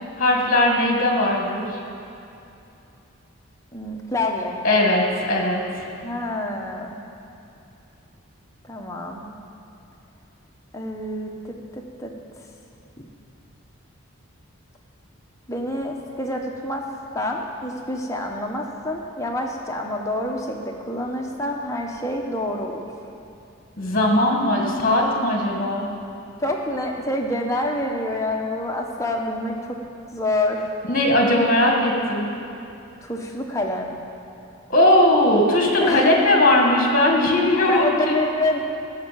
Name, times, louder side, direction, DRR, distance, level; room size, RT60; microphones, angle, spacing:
voice 1, 0.2-1.8 4.6-5.6 23.8-25.9 30.9-32.3 34.7-38.2, left 1 dB, 40° left, 0 dB, 1.7 m, -19 dB
voice 2, 3.7-4.6 6.0-7.0 8.6-9.2 10.7-12.2 13.0-13.1 15.5-16.9 17.1-22.8 26.4-29.8 30.1-30.7 33.0-33.9 35.8-36.2 37.7-38.6, left 1 dB, 15° left, 0 dB, 0.9 m, -27 dB
12.5 x 6.3 x 7.5 m, 2.8 s
head